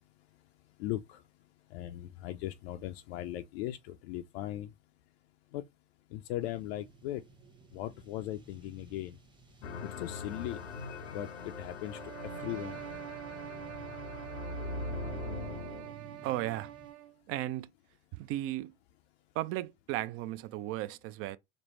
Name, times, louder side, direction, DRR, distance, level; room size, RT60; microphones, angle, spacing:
voice 1, 0.8-1.2 1.7-4.7 5.5-5.6 6.1-7.2 7.7-9.2 10.0-10.6 11.1-12.8, left 14 dB, 65° left, 0.5 m, -38 dB
sound 1, 6.4-16.9, right 2 dB, 15° right, 0.9 m, -55 dB
sound 2, 9.6-15.9, left 3 dB, 90° left, 0.9 m, -41 dB
sound 3, 11.8-17.2, right 14 dB, 70° right, 0.9 m, -45 dB
voice 2, 16.2-16.7 17.3-17.7 18.1-18.7 19.4-21.4, right 15 dB, 45° right, 0.4 m, -35 dB
5.1 x 2.0 x 3.0 m
hypercardioid pair, 100°, 34 cm